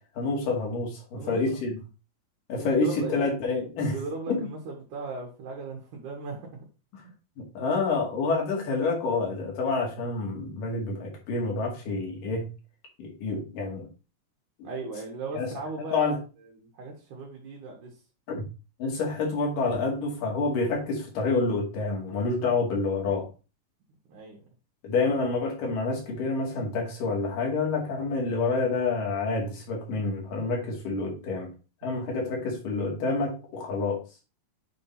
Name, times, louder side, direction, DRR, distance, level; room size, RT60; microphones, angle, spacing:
voice 1, 0.2-1.8 2.5-4.0 4.3-4.4 6.9-7.0 7.4-12.5 13.0-13.9 14.6-14.7 15.4-15.5 15.9-16.2 18.3-18.4 18.8-23.3 24.8-31.5 31.8-34.0, left 3 dB, 80° left, -1 dB, 3.9 m, -28 dB
voice 2, 2.6-3.3 3.9-6.6 14.6-16.1 16.6-17.9 24.1-24.4 31.8-32.1, right 3 dB, 70° right, -1 dB, 3.1 m, -37 dB
8.6 x 3.8 x 4.3 m, 0.32 s
omnidirectional pair, 3.8 m